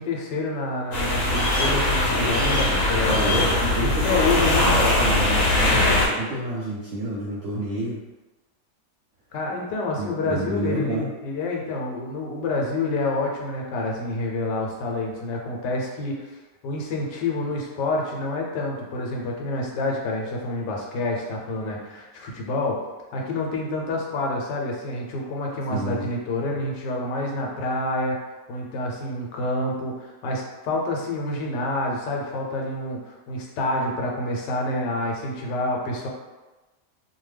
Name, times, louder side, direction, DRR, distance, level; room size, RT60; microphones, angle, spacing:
voice 1, 0.0-3.4 3.8-4.7 9.3-16.3 16.6-22.8 23.1-28.2 28.5-36.1, left 2 dB, 90° left, -1 dB, 1.3 m, -28 dB
sound 1, 0.9-6.1, left 1 dB, 60° left, 1.0 m, -21 dB
voice 2, 3.1-8.0 9.9-11.1 25.7-26.1, right 1 dB, 75° right, -5 dB, 0.7 m, -29 dB
2.7 x 2.2 x 3.2 m, 1.1 s
omnidirectional pair, 1.8 m